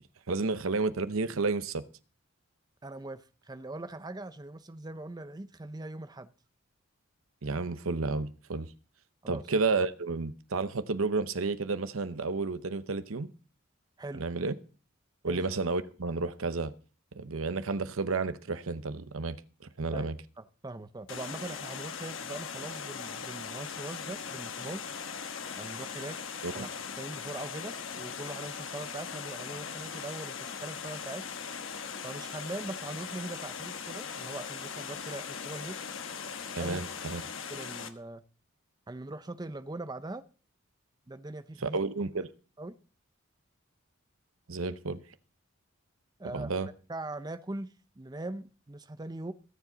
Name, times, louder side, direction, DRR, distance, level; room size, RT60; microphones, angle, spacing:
voice 1, 0.3-1.8 7.4-8.7 9.3-13.3 14.2-14.5 15.2-16.7 17.1-19.4 19.8-20.2 26.4-26.7 36.5-37.2 41.6-42.3 44.5-45.0 46.3-46.7, right 3 dB, 80° right, 0.8 m, -31 dB
voice 2, 2.8-6.3 9.2-9.4 14.0-14.2 15.2-15.4 19.9-20.1 20.4-24.9 25.6-26.2 26.5-26.7 27.0-31.2 32.0-35.8 36.6-36.8 37.5-38.2 38.9-40.2 41.1-41.8 42.6-42.7 46.2-46.5 46.9-49.3, right 2 dB, 20° right, 0.5 m, -41 dB
Water, 21.1-37.9, left 6 dB, 65° left, 1.1 m, -40 dB
22.0 x 7.5 x 3.9 m
head